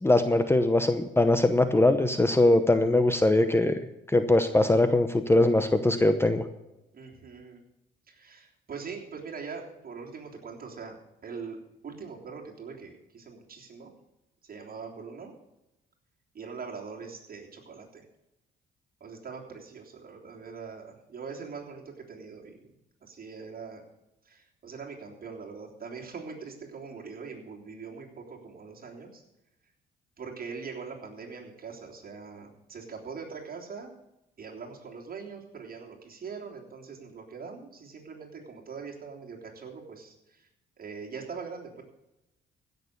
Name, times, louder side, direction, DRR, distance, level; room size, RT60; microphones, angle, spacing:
voice 1, 0.0-3.7 4.1-6.4, left 2 dB, 10° left, 9 dB, 0.8 m, -22 dB
voice 2, 6.9-7.6 8.1-13.9 14.4-15.3 16.3-18.0 19.0-22.7 23.0-23.8 24.3-29.2 30.2-33.9 34.4-40.4 40.8-41.8, right 5 dB, 45° right, -1 dB, 3.4 m, -42 dB
16.0 x 6.8 x 6.8 m, 0.92 s
cardioid pair, 90°, 20 cm